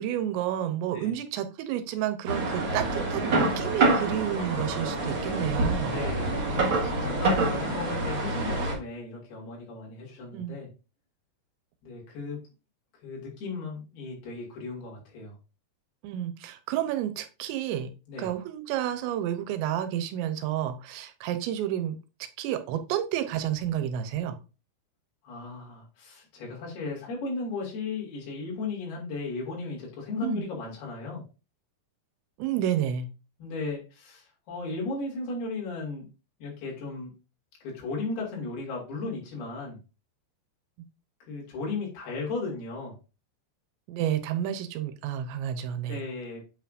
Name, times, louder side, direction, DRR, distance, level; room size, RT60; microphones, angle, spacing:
voice 1, 0.0-6.0 10.3-10.6 16.0-17.9 18.2-22.0 22.4-24.4 30.2-30.4 32.4-33.1 43.9-46.0, right 11 dB, 90° right, 10 dB, 3.0 m, -30 dB
sound 1, 2.3-8.7, right 2 dB, 55° right, 1.4 m, -27 dB
voice 2, 5.8-6.3 6.8-10.7 11.8-12.4 13.0-15.4 18.1-18.3 25.2-31.2 33.4-36.1 36.4-37.1 37.6-39.8 41.3-42.9 45.8-46.4, left 3 dB, 65° left, -3 dB, 4.3 m, -35 dB
8.3 x 5.8 x 2.5 m, 0.31 s
omnidirectional pair, 5.1 m